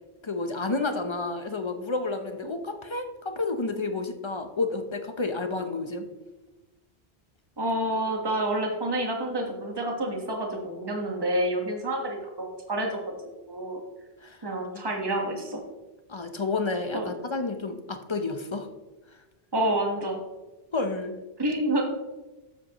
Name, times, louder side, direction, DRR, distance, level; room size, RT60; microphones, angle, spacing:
voice 1, 0.2-6.1 14.2-14.5 14.9-15.0 16.1-18.7 20.7-21.2, left 3 dB, 30° left, 7 dB, 0.7 m, -30 dB
voice 2, 7.6-13.0 13.5-13.8 14.4-15.6 16.9-17.1 19.5-20.2 21.4-21.8, right 1 dB, 25° right, 1 dB, 1.4 m, -28 dB
13.0 x 7.5 x 3.0 m, 1.1 s
omnidirectional pair, 1.0 m